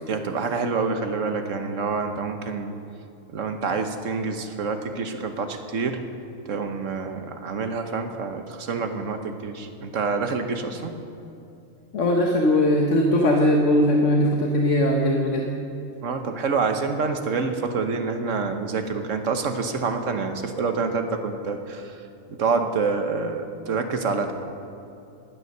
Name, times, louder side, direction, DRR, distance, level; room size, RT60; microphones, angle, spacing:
voice 1, 0.1-2.8 3.3-6.0 6.5-11.0 16.0-22.0 22.3-24.3, right 4 dB, 70° right, 6 dB, 1.4 m, -27 dB
voice 2, 11.9-15.6, left 1 dB, 65° left, 1 dB, 1.4 m, -20 dB
19.0 x 9.5 x 6.6 m, 2.8 s
omnidirectional pair, 1.4 m